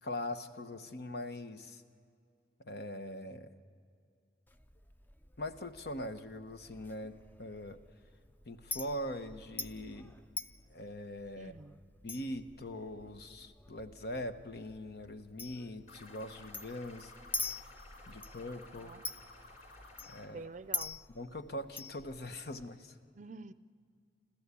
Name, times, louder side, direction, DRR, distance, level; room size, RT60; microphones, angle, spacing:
voice 1, 0.0-1.8 2.6-3.5 5.4-7.8 8.5-10.1 10.7-11.5 12.0-17.1 18.1-18.9 20.1-20.4 21.1-23.0, left 1 dB, 65° left, 9 dB, 1.1 m, -42 dB
Chink clink, 4.5-22.7, left 3 dB, 10° left, 0.5 m, -46 dB
voice 2, 11.4-11.8 18.8-19.1 20.2-21.0 23.1-23.5, right 3 dB, 45° right, 15 dB, 0.5 m, -48 dB
sound 1, 15.9-20.3, left 2 dB, 45° left, 3.6 m, -55 dB
30.0 x 13.5 x 8.4 m, 2.3 s
head